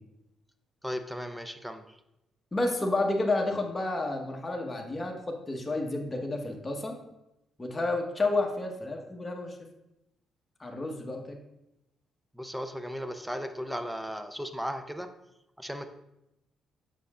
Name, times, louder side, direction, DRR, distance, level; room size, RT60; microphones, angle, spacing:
voice 1, 0.8-2.0 12.3-15.1 15.6-15.9, equal, 5° right, 8 dB, 0.6 m, -36 dB
voice 2, 2.5-6.9 7.6-9.6 10.6-11.4, left 2 dB, 20° left, 1 dB, 1.2 m, -30 dB
6.7 x 6.5 x 2.4 m, 0.88 s
cardioid pair, 90°, 0 cm